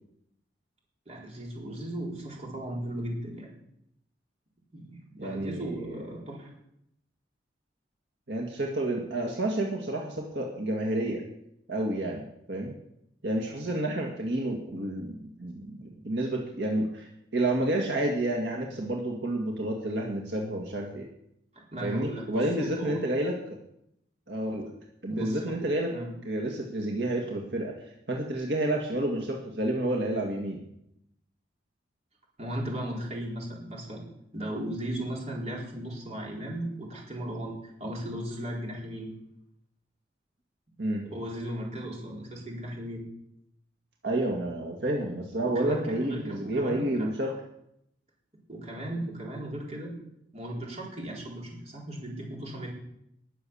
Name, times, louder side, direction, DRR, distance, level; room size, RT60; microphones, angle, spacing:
voice 1, 1.1-3.5 4.7-6.5 21.5-23.0 25.1-25.4 25.9-26.1 32.4-34.0 34.3-39.1 41.0-43.0 45.4-47.1 48.5-49.9 50.3-52.7, right 1 dB, 35° right, -2 dB, 4.1 m, -36 dB
voice 2, 5.2-6.1 8.3-11.2 11.7-12.2 12.5-12.7 13.2-21.1 21.8-23.6 24.3-24.7 25.0-25.9 26.2-27.7 28.1-30.6 40.8-41.0 44.0-47.3, right 1 dB, 70° right, 0 dB, 2.0 m, -30 dB
20.0 x 7.1 x 7.2 m, 0.78 s
head